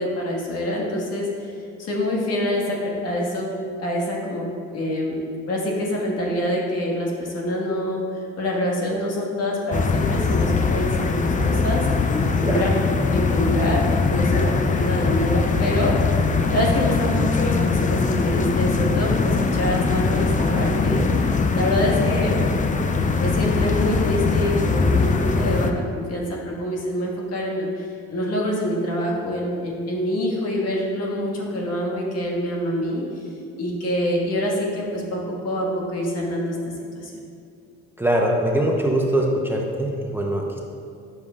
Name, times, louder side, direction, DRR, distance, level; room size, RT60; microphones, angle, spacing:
voice 1, 0.0-1.5 1.8-4.5 4.7-8.0 8.4-11.9 12.4-12.7 13.0-16.1 16.5-21.1 21.5-22.4 23.2-33.0 33.6-36.6 37.0-37.1, left 1 dB, 55° left, -2 dB, 1.7 m, -25 dB
sound 1, 9.7-25.7, left 4 dB, 25° left, 0.5 m, -21 dB
voice 2, 38.0-40.6, right 1 dB, 5° right, -1 dB, 0.8 m, -22 dB
9.6 x 6.9 x 2.4 m, 2.5 s
supercardioid pair, 85°, 30 cm